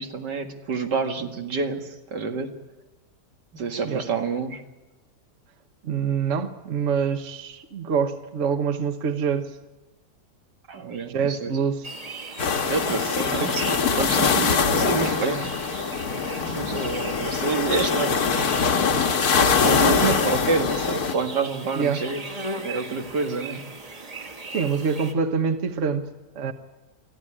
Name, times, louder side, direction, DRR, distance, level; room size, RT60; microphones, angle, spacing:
voice 1, 0.0-2.5 3.5-4.6 10.7-11.5 12.7-15.5 16.5-18.2 19.4-22.2 22.6-23.6 24.2-24.3, right 4 dB, 85° right, 5 dB, 2.4 m, -28 dB
voice 2, 5.8-9.6 11.1-11.9 13.4-13.5 19.8-20.2 21.7-22.1 24.5-26.5, right 6 dB, 50° right, 8 dB, 1.4 m, -26 dB
sound 1, 11.8-25.1, right 2 dB, 25° right, 1.5 m, -38 dB
sound 2, 12.4-21.1, left 5 dB, 65° left, 1.8 m, -23 dB
24.0 x 14.5 x 9.9 m, 1.1 s
omnidirectional pair, 1.8 m